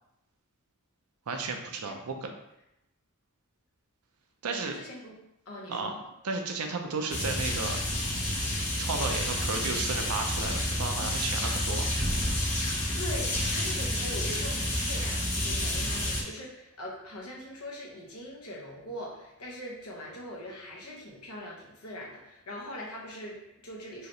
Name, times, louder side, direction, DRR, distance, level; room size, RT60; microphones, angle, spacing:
voice 1, 1.3-2.3 4.4-4.8 5.7-6.0 6.2-7.8 8.6-11.9, right 4 dB, 80° right, 4 dB, 0.6 m, -33 dB
voice 2, 4.6-5.2 5.5-6.0 12.9-24.1, left 1 dB, 80° left, -2 dB, 0.9 m, -42 dB
sound 1, 7.1-16.2, left 1 dB, 30° left, 1.0 m, -29 dB
4.7 x 2.9 x 3.1 m, 0.86 s
head